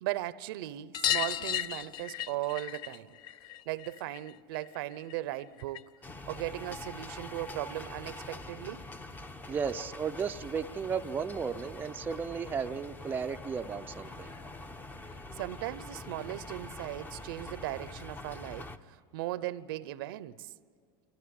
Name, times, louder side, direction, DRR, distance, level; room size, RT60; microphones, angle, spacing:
voice 1, 0.0-3.2 3.7-5.9 6.3-8.9 15.4-20.5, right 15 dB, 75° right, 0.7 m, -37 dB
sound 1, 0.9-6.1 6.3-7.5 8.9-9.0 9.2-9.3 9.6-9.7 10.9-11.0 11.3-11.4 11.8-11.9 13.1-13.2 14.0-14.1, left 11 dB, 40° left, 0.5 m, -36 dB
sound 2, 6.0-18.8, left 2 dB, 15° left, 0.8 m, -45 dB
voice 2, 9.5-14.3, right 6 dB, 15° right, 0.5 m, -34 dB
26.5 x 14.5 x 9.7 m
supercardioid pair, 135°, 12 cm